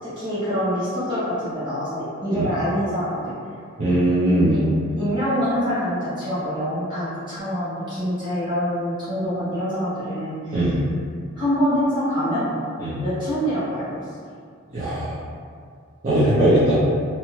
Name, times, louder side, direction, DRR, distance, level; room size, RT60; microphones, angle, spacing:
voice 1, 0.0-3.3 4.4-4.7 5.0-10.7 11.3-12.5 13.0-14.0, equal, 20° right, -13 dB, 1.2 m, -25 dB
voice 2, 3.8-4.6 10.5-10.8 12.8-13.0 14.7-15.2 16.0-16.7, right 1 dB, 35° right, -13 dB, 0.6 m, -19 dB
2.7 x 2.2 x 3.1 m, 2.2 s
head